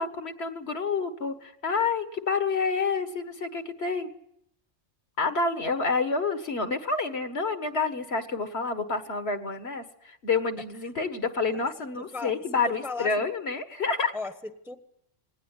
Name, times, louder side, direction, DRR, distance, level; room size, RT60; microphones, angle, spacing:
voice 1, 0.0-4.1 5.2-14.1, left 4 dB, 60° left, 8 dB, 1.8 m, -28 dB
voice 2, 12.8-13.3 14.1-14.8, left 3 dB, ahead, 9 dB, 1.2 m, -36 dB
19.0 x 18.5 x 9.8 m, 0.74 s
omnidirectional pair, 1.2 m